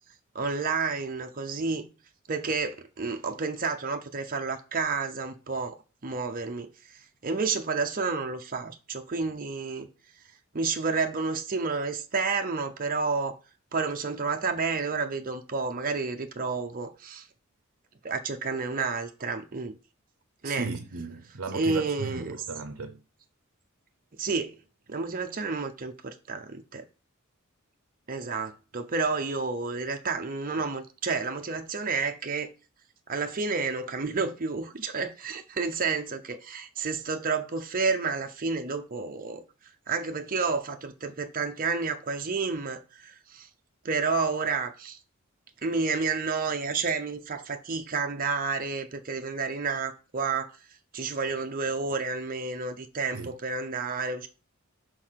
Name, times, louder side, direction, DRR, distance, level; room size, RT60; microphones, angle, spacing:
voice 1, 0.3-1.9 2.3-5.8 6.0-9.9 10.5-13.3 13.7-17.3 18.0-19.8 20.4-20.7 21.5-22.4 24.2-24.6 24.9-26.9 28.1-32.5 33.1-39.4 39.9-43.5 43.8-45.0 45.6-50.6 50.9-54.3, right 4 dB, 40° right, 0.7 m, -30 dB
voice 2, 20.4-23.0 53.1-53.3, right 4 dB, 85° right, 0.7 m, -35 dB
4.8 x 4.6 x 5.8 m
head